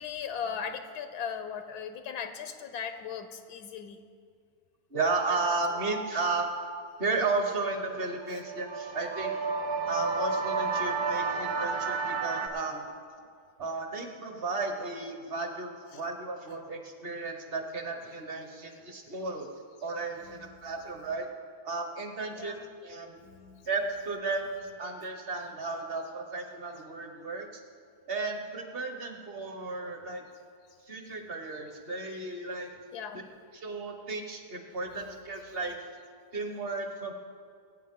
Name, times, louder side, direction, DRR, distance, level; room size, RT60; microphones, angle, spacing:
voice 1, 0.0-4.0 5.7-5.8 15.9-16.0 20.2-20.7 22.4-22.7 23.2-23.6 32.9-33.3 34.8-35.1, left 7 dB, 85° left, 8 dB, 1.2 m, -38 dB
voice 2, 4.9-6.5 7.0-9.3 9.9-13.0 13.6-19.5 19.8-21.3 21.6-22.5 22.8-23.2 23.7-24.5 24.8-27.5 28.1-30.2 30.9-32.7 33.5-35.7 36.3-37.1, right 3 dB, 40° right, 4 dB, 1.3 m, -34 dB
sound 1, 8.2-12.5, right 4 dB, 80° right, 1.4 m, -31 dB
21.5 x 8.9 x 3.7 m, 2.2 s
omnidirectional pair, 1.7 m